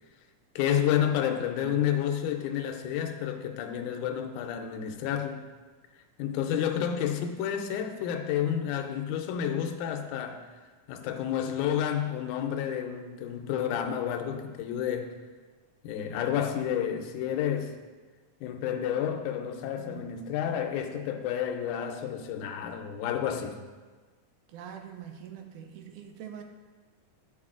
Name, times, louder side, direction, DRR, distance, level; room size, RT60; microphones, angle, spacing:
voice 1, 0.6-5.4 6.2-10.4 10.9-15.2 15.8-17.7 18.4-23.6, left 9 dB, 85° left, 5 dB, 2.1 m, -30 dB
voice 2, 19.8-20.2 24.5-26.4, right 9 dB, 85° right, 4 dB, 2.1 m, -44 dB
10.5 x 4.9 x 2.4 m, 1.4 s
omnidirectional pair, 3.5 m